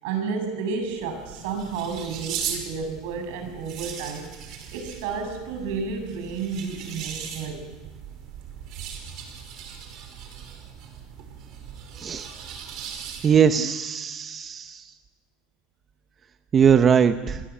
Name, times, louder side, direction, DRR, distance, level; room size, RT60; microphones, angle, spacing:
voice 1, 0.0-4.3 4.7-7.7, right 5 dB, 70° right, 6 dB, 7.5 m, -31 dB
sound 1, 0.8-13.6, right 8 dB, 50° right, 5.4 m, -39 dB
voice 2, 12.0-12.3 13.2-14.8 16.5-17.4, right 7 dB, 25° right, 9 dB, 0.9 m, -20 dB
28.5 x 20.5 x 8.5 m, 1.2 s
supercardioid pair, 150°, 0 cm